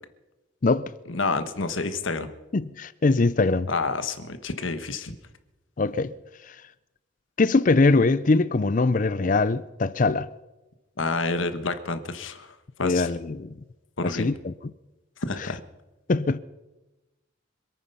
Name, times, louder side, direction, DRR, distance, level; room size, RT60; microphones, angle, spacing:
voice 1, 1.1-2.3 3.7-5.2 11.0-12.5 12.8-13.1 14.0-14.3 15.3-15.6, left 3 dB, 80° left, 1.4 m, -28 dB
voice 2, 2.5-3.7 5.8-6.1 7.4-10.3 12.8-13.5 14.0-14.5 15.4-15.5 16.1-16.4, left 3 dB, 40° left, 0.5 m, -22 dB
26.5 x 9.2 x 5.6 m
head